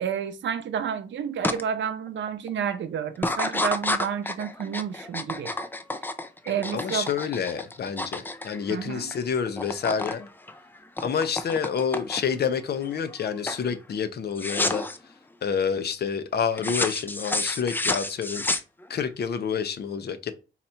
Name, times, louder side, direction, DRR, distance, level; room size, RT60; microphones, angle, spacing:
voice 1, 0.0-5.5 6.5-7.1 8.7-9.1, right 8 dB, 70° right, 0.7 m, -30 dB
sound 1, 1.4-1.6 2.1-2.5 3.1-9.2 9.5-10.2 10.5-12.4 12.9-13.2 13.5-13.7 14.4-15.0 16.6-19.1, left 2 dB, 10° left, 0.3 m, -30 dB
voice 2, 6.7-10.3 11.0-14.8 15.4-18.5 18.9-20.3, left 7 dB, 55° left, 0.7 m, -28 dB
4.0 x 2.9 x 4.3 m
wide cardioid pair, 150°, 20 cm